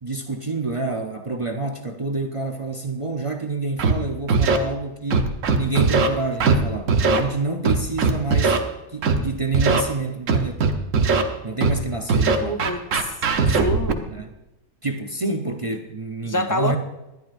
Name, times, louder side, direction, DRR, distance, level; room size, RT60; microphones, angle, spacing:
voice 1, 0.0-8.6 8.9-10.7 11.4-12.7 14.1-14.3 14.8-16.8, right 3 dB, 30° right, 3 dB, 0.6 m, -28 dB
Scratching (performance technique), 3.8-3.9 4.3-4.6 5.1-6.1 6.4-6.6 6.9-7.2 7.6-8.6 9.0-9.2 9.5-9.8 10.3-11.2 11.6-11.8 12.1-13.9, right 4 dB, 65° right, 1.3 m, -19 dB
voice 2, 12.4-13.1 13.6-14.0 16.2-16.8, left 1 dB, 20° left, 6 dB, 0.6 m, -26 dB
20.0 x 12.0 x 2.5 m, 0.97 s
omnidirectional pair, 1.5 m